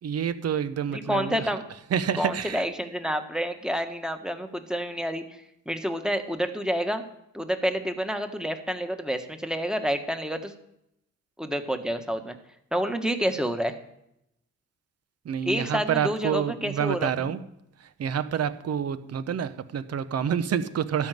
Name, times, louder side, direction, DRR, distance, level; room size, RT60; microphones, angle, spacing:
voice 1, 0.0-1.4 1.9-2.6 15.2-17.4 18.0-21.1, right 8 dB, 55° right, 13 dB, 0.9 m, -28 dB
voice 2, 0.9-1.6 2.1-7.0 7.3-10.5 11.4-12.4 12.7-13.8 15.4-17.3, equal, ahead, 7 dB, 1.4 m, -29 dB
13.0 x 5.6 x 9.2 m, 0.78 s
cardioid pair, 90°, 30 cm